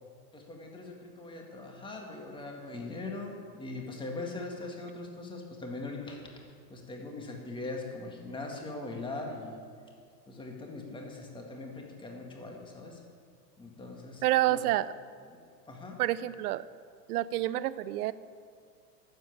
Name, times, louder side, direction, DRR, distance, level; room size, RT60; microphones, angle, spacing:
voice 1, 0.3-6.2 6.7-9.6 10.3-13.0 13.6-14.6 15.7-16.0, left 2 dB, 10° left, 0 dB, 1.9 m, -41 dB
voice 2, 14.2-14.9 16.0-16.7 17.1-18.1, right 15 dB, 70° right, 17 dB, 0.7 m, -28 dB
12.0 x 7.6 x 8.6 m, 2.1 s
hypercardioid pair, 125°, 48 cm